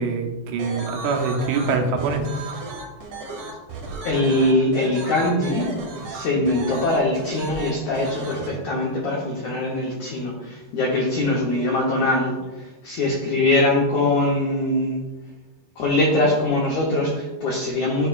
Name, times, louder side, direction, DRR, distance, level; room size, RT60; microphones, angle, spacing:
voice 1, 0.0-2.2, right 4 dB, 90° right, 3 dB, 3.1 m, -24 dB
sound 1, 0.6-8.5, right 3 dB, 70° right, 2.9 m, -35 dB
voice 2, 4.0-5.7 6.1-15.0 15.8-18.1, left 2 dB, 80° left, -3 dB, 1.6 m, -22 dB
12.0 x 4.9 x 2.5 m, 1.1 s
omnidirectional pair, 4.7 m